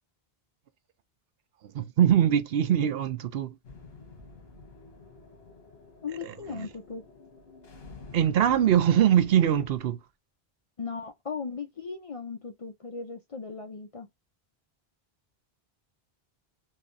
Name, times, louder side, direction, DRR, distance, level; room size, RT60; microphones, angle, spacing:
voice 1, 1.7-3.5 6.2-6.7 8.1-10.0, right 10 dB, 70° right, 0.8 m, -23 dB
sound 1, 3.6-9.8, left 4 dB, 75° left, 1.5 m, -49 dB
voice 2, 6.0-7.0 10.8-14.1, left 5 dB, 45° left, 0.5 m, -37 dB
3.8 x 2.9 x 2.5 m
omnidirectional pair, 1.0 m